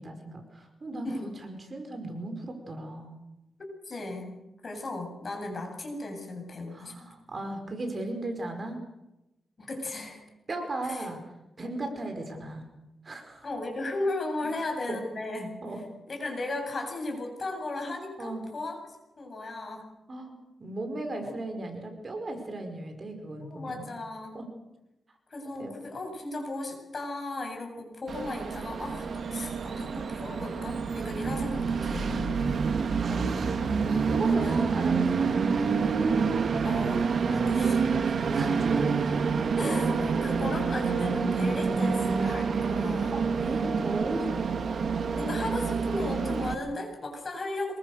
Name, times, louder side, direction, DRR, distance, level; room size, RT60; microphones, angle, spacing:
voice 1, 0.0-3.2 6.7-8.8 10.5-11.2 11.6-12.7 13.0-13.5 14.9-15.0 15.6-15.8 18.2-18.4 20.1-23.8 24.3-24.5 25.6-25.7 33.9-35.3 38.3-38.8 43.1-44.3, right 2 dB, 35° right, 5 dB, 5.0 m, -36 dB
voice 2, 3.9-4.3 4.6-6.9 9.6-10.2 10.8-11.1 13.4-15.6 16.1-18.8 19.2-19.9 21.2-21.4 23.4-24.4 25.3-32.4 33.1-33.3 34.2-34.6 36.6-37.0 37.3-38.1 39.6-43.2 45.1-47.8, left 2 dB, 40° left, 2 dB, 8.0 m, -36 dB
Train, 28.1-46.5, right 5 dB, 60° right, 2.0 m, -27 dB
26.5 x 22.0 x 6.7 m, 0.94 s
wide cardioid pair, 115°, 0 cm